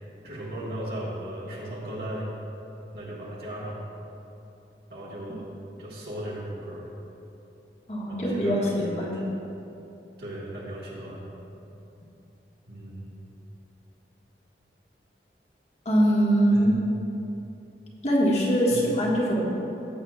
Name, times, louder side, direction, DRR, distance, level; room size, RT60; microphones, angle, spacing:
voice 1, 0.2-2.3 2.9-3.8 4.9-5.5 5.8-6.9 8.1-9.2 10.2-11.3 12.7-13.2 16.5-16.8 18.7-18.8, right 1 dB, 65° right, -6 dB, 1.6 m, -36 dB
voice 2, 7.9-9.2 15.8-16.7 18.0-19.6, equal, 35° left, -4 dB, 1.6 m, -23 dB
14.5 x 7.9 x 2.4 m, 2.9 s
head